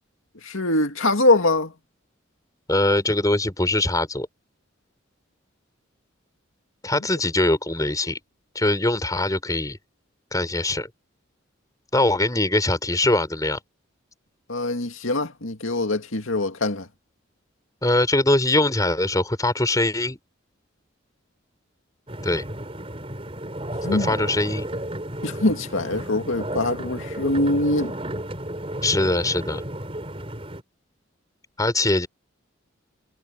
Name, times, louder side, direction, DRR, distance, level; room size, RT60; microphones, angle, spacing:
voice 1, 0.4-1.7 14.5-16.9 23.8-24.1 25.2-27.9, left 2 dB, 85° left, 2.2 m, -23 dB
voice 2, 2.7-4.3 6.8-8.2 8.5-9.8 10.3-10.9 11.9-13.6 17.8-20.2 22.2-22.4 23.9-24.7 28.8-29.6 31.6-32.1, left 2 dB, 20° left, 3.9 m, -22 dB
sound 1, 22.1-30.6, right 1 dB, 30° right, 4.9 m, -33 dB
head